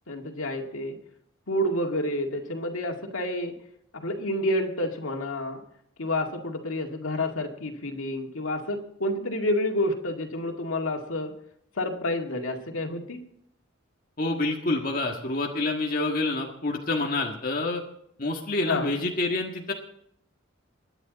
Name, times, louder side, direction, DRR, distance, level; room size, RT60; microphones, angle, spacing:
voice 1, 0.1-1.0 1.5-3.6 3.9-5.6 6.0-11.3 11.8-13.2 18.7-18.9, left 1 dB, 90° left, 3 dB, 2.1 m, -29 dB
voice 2, 14.2-17.8 18.2-19.7, left 2 dB, 45° left, 0 dB, 1.6 m, -27 dB
21.5 x 10.5 x 4.0 m, 0.72 s
head